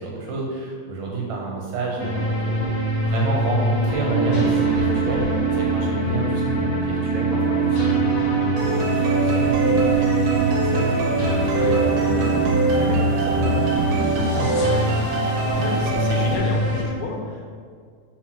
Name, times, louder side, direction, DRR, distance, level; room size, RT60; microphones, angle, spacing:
voice 1, 0.0-2.6 3.0-8.0 8.3-10.1 10.4-14.7, right 3 dB, 65° right, -3 dB, 2.7 m, -29 dB
sound 1, 2.0-16.8, left 1 dB, 45° left, 1.8 m, -24 dB
sound 2, 4.0-14.2, right 11 dB, 50° right, 1.5 m, -24 dB
sound 3, 8.6-16.4, right 3 dB, 85° right, 3.2 m, -26 dB
voice 2, 15.5-17.5, left 4 dB, 80° left, 1 dB, 2.9 m, -30 dB
6.3 x 5.5 x 6.2 m, 2.1 s
omnidirectional pair, 4.4 m